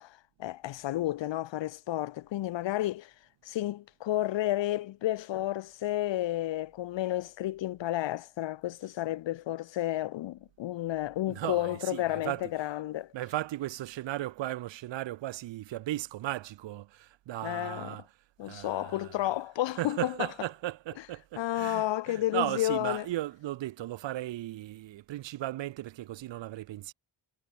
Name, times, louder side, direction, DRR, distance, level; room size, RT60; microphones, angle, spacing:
voice 1, 0.0-3.1 3.5-13.1 17.4-18.0 18.4-20.1 21.4-23.0, left 14 dB, 65° left, 0.6 m, -31 dB
voice 2, 11.3-12.5 13.1-18.1 18.4-19.3 19.8-26.9, right 14 dB, 65° right, 0.6 m, -36 dB
cardioid pair, 80°, 48 cm